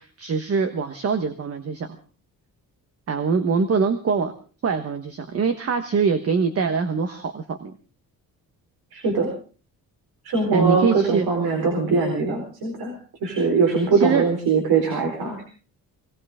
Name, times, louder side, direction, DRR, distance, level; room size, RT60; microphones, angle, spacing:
voice 1, 0.0-2.0 3.1-4.3 4.6-7.7 10.5-11.3 13.9-14.3, right 5 dB, 40° right, 8 dB, 1.3 m, -23 dB
voice 2, 8.9-9.3 10.2-15.4, right 4 dB, 80° right, 3 dB, 4.3 m, -22 dB
21.5 x 18.5 x 3.7 m, 0.38 s
wide cardioid pair, 165°, 36 cm